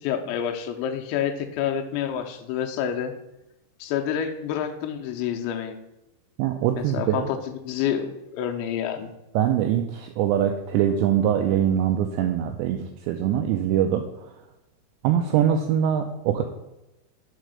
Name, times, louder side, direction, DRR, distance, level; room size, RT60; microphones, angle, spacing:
voice 1, 0.0-3.1 3.8-5.8 6.8-9.1, left 9 dB, 85° left, 5 dB, 2.9 m, -28 dB
voice 2, 6.4-7.2 9.4-12.8 13.1-14.0 15.0-16.4, right 10 dB, 90° right, 5 dB, 2.5 m, -23 dB
6.6 x 4.7 x 6.4 m, 0.94 s
omnidirectional pair, 5.7 m